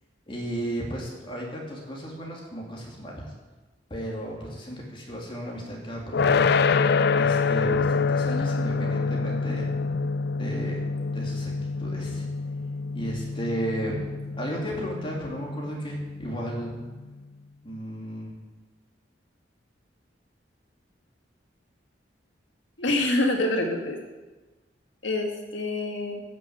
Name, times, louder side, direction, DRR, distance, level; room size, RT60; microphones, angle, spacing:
voice 1, 0.3-3.3 3.9-6.5 7.1-9.7 10.3-10.8 11.1-12.3 12.9-14.1 14.4-16.8 17.6-18.3, equal, 30° left, -2 dB, 2.8 m, -34 dB
sound 1, 6.1-17.1, left 4 dB, 60° left, 0.5 m, -26 dB
voice 2, 22.8-24.0 25.0-26.2, left 2 dB, 85° left, 2 dB, 2.1 m, -26 dB
12.0 x 6.5 x 8.1 m, 1.2 s
head